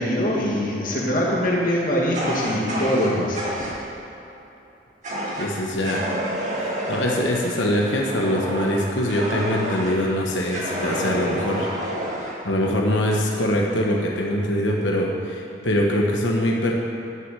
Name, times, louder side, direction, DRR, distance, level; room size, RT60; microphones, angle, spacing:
voice 1, 0.0-3.4, equal, 45° left, -4 dB, 2.0 m, -23 dB
Fire, 2.1-3.7 5.0-5.5 5.8-10.0 10.5-12.4, equal, 40° right, 2.0 m, -29 dB
voice 2, 5.4-6.1 6.6-11.9 12.4-16.7, left 1 dB, 90° left, -1 dB, 1.2 m, -23 dB
11.0 x 6.4 x 7.5 m, 3.0 s
head